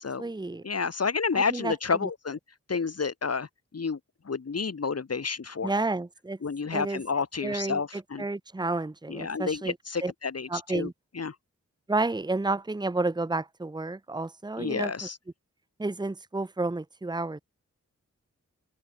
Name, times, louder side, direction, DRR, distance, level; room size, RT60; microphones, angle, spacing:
voice 1, 0.0-0.6 1.3-1.7 5.6-6.4 6.7-7.0 7.4-9.8 10.0-10.1 10.5-10.9 11.9-15.1 15.8-17.4, right 2 dB, 15° right, 1.0 m, -31 dB
voice 2, 0.6-2.4 2.7-3.5 3.7-4.0 4.3-5.7 6.4-8.2 9.1-10.9 11.2-11.3 14.6-15.2, left 5 dB, 55° left, 2.2 m, -30 dB
open air
cardioid pair, 60°, 30 cm